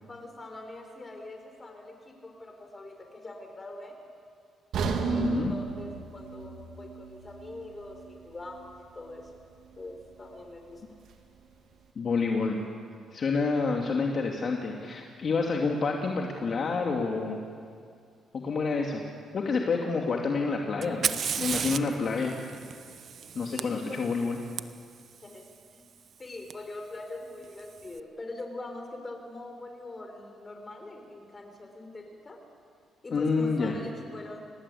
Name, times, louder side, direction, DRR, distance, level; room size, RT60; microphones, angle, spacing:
voice 1, 0.1-4.0 5.0-9.3 9.8-10.8 23.5-24.1 25.2-25.9 26.2-32.4 33.0-34.4, left 2 dB, 25° left, 4 dB, 5.6 m, -43 dB
sound 1, 4.7-8.8 9.1-9.3 9.9-10.0, right 5 dB, 75° right, 2.8 m, -34 dB
voice 2, 5.0-5.5 12.0-12.6 13.1-17.4 18.3-19.0 19.3-22.3 23.3-24.4 33.1-33.8, left 4 dB, 50° left, 0 dB, 2.6 m, -28 dB
Fire, 20.8-24.6 26.5-26.6 27.4-27.8, right 7 dB, 55° right, 1.0 m, -34 dB
28.5 x 19.0 x 8.7 m, 2.2 s
cardioid pair, 90°, 0 cm